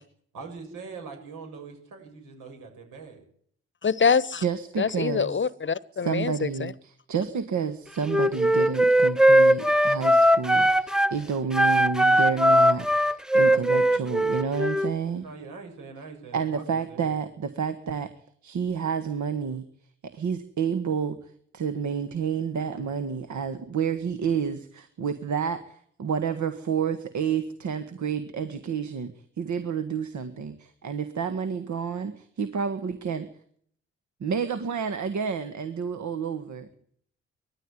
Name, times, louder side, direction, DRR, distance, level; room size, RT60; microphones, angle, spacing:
voice 1, 0.3-3.2 4.8-4.9 13.4-14.1 15.2-17.2, right 4 dB, 80° right, 6.5 m, -43 dB
voice 2, 3.8-4.4 4.8-6.7, left 6 dB, 35° left, 1.0 m, -25 dB
voice 3, 4.4-5.4 6.0-15.2 16.3-18.1 18.4-19.7 20.0-33.3 34.2-36.7, right 6 dB, 60° right, 1.7 m, -30 dB
Wind instrument woodwind instrument, 8.1-11.1 11.5-14.9, equal, ahead, 1.0 m, -20 dB
20.5 x 13.5 x 9.8 m
hypercardioid pair, 45°, 32 cm